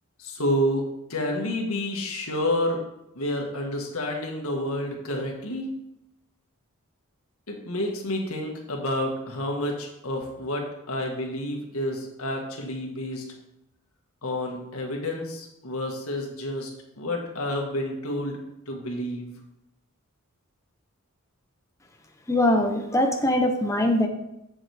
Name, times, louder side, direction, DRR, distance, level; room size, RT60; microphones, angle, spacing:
voice 1, 0.2-0.8 1.1-2.8 3.1-5.7 7.5-13.2 14.2-16.7 17.0-18.4 18.7-19.3, left 1 dB, 75° left, 1 dB, 1.7 m, -29 dB
voice 2, 22.3-24.1, left 1 dB, 15° left, 3 dB, 0.8 m, -22 dB
7.9 x 7.1 x 3.5 m, 0.86 s
head